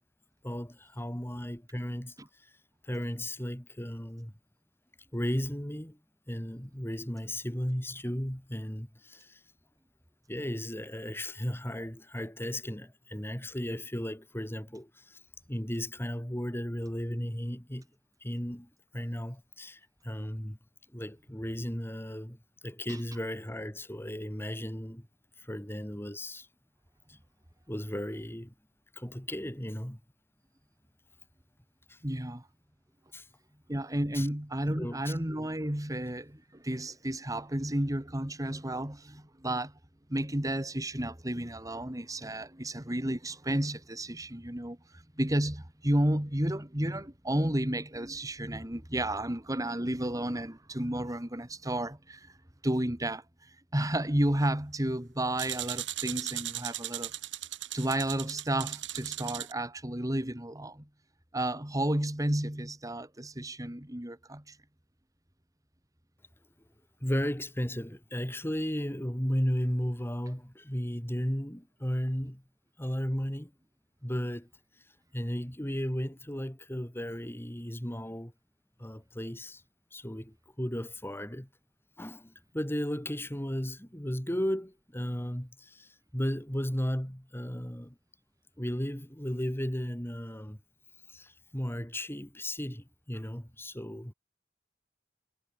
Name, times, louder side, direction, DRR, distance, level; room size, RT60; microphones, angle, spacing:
voice 1, 0.4-2.1 2.8-4.3 5.1-6.0 6.3-9.4 10.3-15.2 15.5-17.9 18.2-20.6 20.9-25.1 25.4-26.5 27.1-27.2 27.7-28.5 29.0-30.0 31.9-32.0 33.1-33.3 34.1-34.3 34.8-35.1 67.0-72.4 72.8-73.5 74.0-74.5 75.1-78.3 78.8-79.6 79.9-81.5 82.0-87.9 88.6-90.6 91.1-94.1, equal, 15° left, 2.9 m, -35 dB
voice 2, 32.0-32.5 33.7-39.7 40.1-52.4 52.6-57.1 57.7-60.9 61.3-64.6, right 1 dB, 20° right, 2.2 m, -32 dB
sound 1, 55.4-59.5, right 13 dB, 80° right, 4.4 m, -37 dB
head